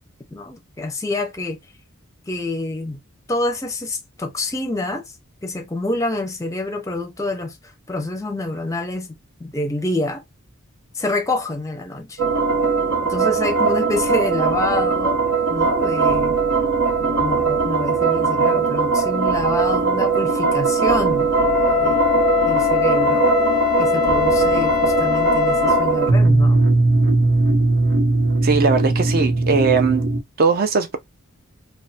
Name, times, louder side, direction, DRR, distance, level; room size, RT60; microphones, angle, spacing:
voice 1, 0.3-1.6 2.3-3.0 3.3-5.0 5.4-10.2 10.9-12.2 13.0-15.2 15.5-16.4 17.0-21.3 21.7-23.3 23.8-26.6, left 2 dB, 15° left, 0.5 m, -27 dB
sound 1, 12.2-30.2, right 4 dB, 80° right, 0.8 m, -19 dB
Wind instrument woodwind instrument, 21.3-25.9, left 21 dB, 90° left, 0.4 m, -22 dB
voice 2, 28.4-30.0 30.4-31.0, right 5 dB, 45° right, 0.4 m, -19 dB
3.1 x 2.1 x 2.7 m
head